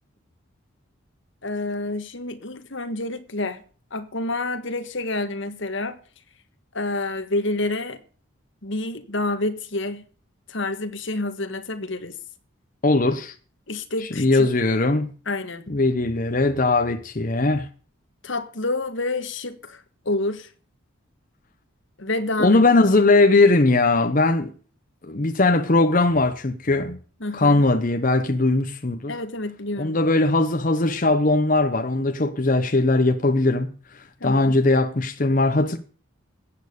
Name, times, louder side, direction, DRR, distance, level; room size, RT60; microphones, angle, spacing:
voice 1, 1.4-3.6 3.9-6.0 6.7-8.0 8.6-10.0 10.5-12.1 13.7-14.5 15.3-15.6 18.2-20.5 22.0-22.6 27.2-27.7 29.1-29.9 34.2-34.6, left 2 dB, 60° left, 1.5 m, -28 dB
voice 2, 12.8-13.3 14.2-15.1 15.7-17.7 22.4-24.5 25.1-27.0 27.3-29.1 29.8-33.7 34.2-35.8, left 2 dB, 40° left, 0.9 m, -19 dB
15.0 x 8.7 x 6.8 m
head